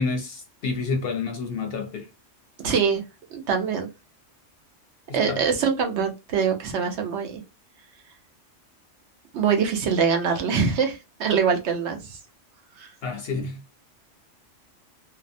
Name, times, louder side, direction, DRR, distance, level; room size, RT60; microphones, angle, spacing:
voice 1, 0.0-2.0 5.3-5.4 13.0-13.6, left 4 dB, 65° left, 0.7 m, -28 dB
voice 2, 2.6-3.0 3.3-3.9 5.1-7.4 9.3-12.2 12.8-12.9, right 6 dB, 70° right, 0.9 m, -24 dB
2.7 x 2.0 x 2.5 m
omnidirectional pair, 1.3 m